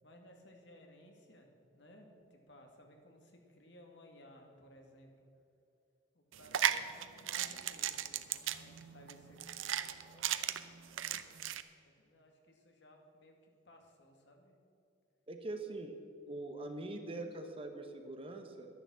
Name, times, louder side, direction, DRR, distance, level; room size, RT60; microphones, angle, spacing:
voice 1, 0.0-1.5 1.7-5.3 6.1-11.0 11.8-14.5, left 1 dB, 60° left, 2 dB, 2.0 m, -59 dB
sound 1, 6.3-11.6, right 10 dB, 80° right, 0.6 m, -36 dB
voice 2, 15.3-15.9 16.3-18.7, right 2 dB, 30° right, 5 dB, 1.1 m, -43 dB
11.0 x 10.5 x 7.5 m, 2.6 s
head